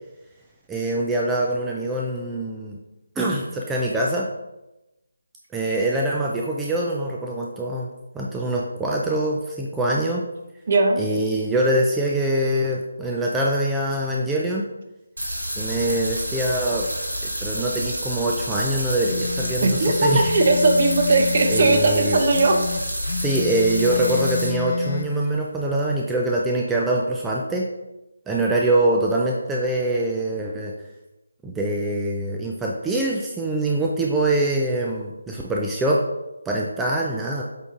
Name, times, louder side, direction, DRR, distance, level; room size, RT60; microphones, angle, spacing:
voice 1, 0.7-2.8 3.2-4.3 5.5-7.9 8.1-10.2 11.0-14.7 15.6-16.9 17.4-20.3 21.5-22.2 23.2-27.7 28.3-30.7 31.4-36.0 36.5-37.4, right 1 dB, 5° right, -3 dB, 0.5 m, -24 dB
voice 2, 10.7-11.0 19.6-22.6, right 3 dB, 40° right, 4 dB, 0.9 m, -18 dB
sound 1, 15.2-24.5, equal, 75° right, 2.3 m, -29 dB
sound 2, 19.0-21.8 22.3-25.1, left 6 dB, 45° left, 0.7 m, -29 dB
8.1 x 3.8 x 3.7 m, 0.97 s
figure-of-eight pair, 155°, 0 cm